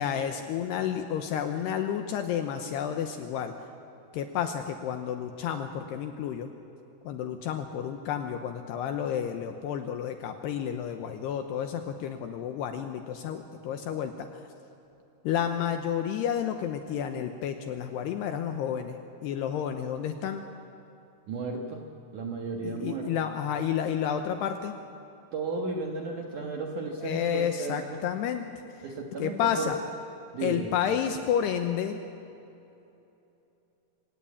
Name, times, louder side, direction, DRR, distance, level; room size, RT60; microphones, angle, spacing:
voice 1, 0.0-3.5 4.1-6.5 7.0-14.4 15.2-20.4 22.6-24.7 27.0-28.5 29.2-29.8 30.4-32.0, left 8 dB, 85° left, 6 dB, 2.4 m, -31 dB
voice 2, 21.3-21.9 22.1-23.1 25.3-28.0 28.8-29.7 30.3-30.7, right 3 dB, 90° right, 1 dB, 1.7 m, -34 dB
27.0 x 17.5 x 8.5 m, 2.8 s
omnidirectional pair, 6.0 m